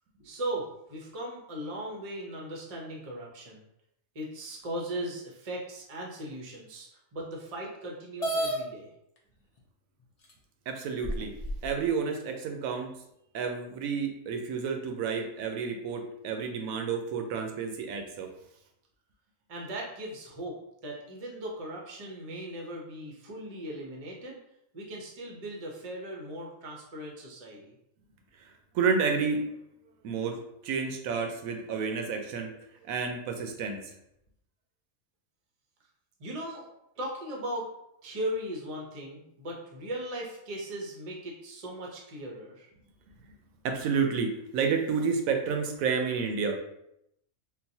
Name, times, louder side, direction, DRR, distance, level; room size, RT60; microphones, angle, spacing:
voice 1, 0.2-3.6 4.1-8.9 19.5-20.6 20.8-24.4 24.7-27.7 36.2-36.7 37.0-37.7 38.0-42.7, right 1 dB, 35° right, -2 dB, 0.6 m, -38 dB
sound 1, 8.2-8.6 9.6-9.7 10.3-10.4 11.0-11.7, right 1 dB, 65° left, 0.3 m, -30 dB
voice 2, 10.7-11.3 11.6-12.9 13.3-18.3 28.7-29.5 30.0-30.4 30.6-32.5 32.8-33.8 43.6-46.6, right 5 dB, 75° right, 4 dB, 1.0 m, -30 dB
3.9 x 2.2 x 2.7 m, 0.79 s
omnidirectional pair, 1.5 m